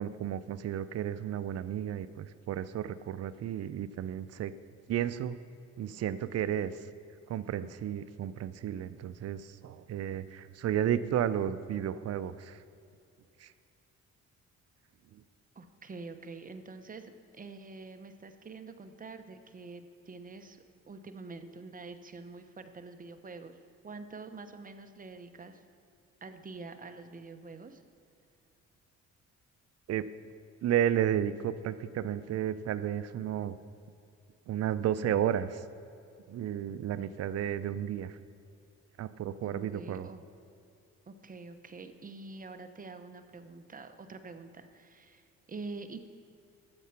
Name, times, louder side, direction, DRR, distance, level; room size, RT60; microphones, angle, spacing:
voice 1, 0.0-4.5 4.9-5.4 5.8-6.7 7.3-12.6 13.4-13.5 15.1-15.2 29.9-30.0 30.6-33.6 34.5-35.6 36.3-38.2 39.0-40.1, right 10 dB, 55° right, 13 dB, 0.5 m, -32 dB
voice 2, 15.5-23.6 23.8-25.6 26.2-27.8 39.4-40.2 41.1-46.1, right 3 dB, 30° right, 8 dB, 0.9 m, -46 dB
12.0 x 7.5 x 5.9 m, 2.6 s
cardioid pair, 90°, 30 cm